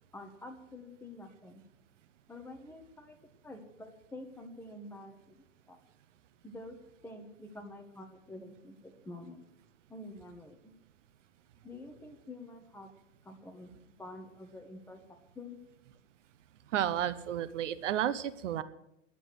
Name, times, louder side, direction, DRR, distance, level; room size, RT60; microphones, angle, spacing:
voice 1, 0.1-1.6 2.3-3.2 3.4-5.4 5.7-5.8 6.4-6.8 7.0-9.4 9.9-10.7 11.6-12.9 13.2-13.7 14.0-15.0 15.4-15.6, left 2 dB, 5° left, 3 dB, 1.6 m, -48 dB
voice 2, 16.7-18.6, right 10 dB, 75° right, 14 dB, 1.1 m, -32 dB
11.5 x 8.6 x 9.5 m, 0.81 s
supercardioid pair, 150°, 37 cm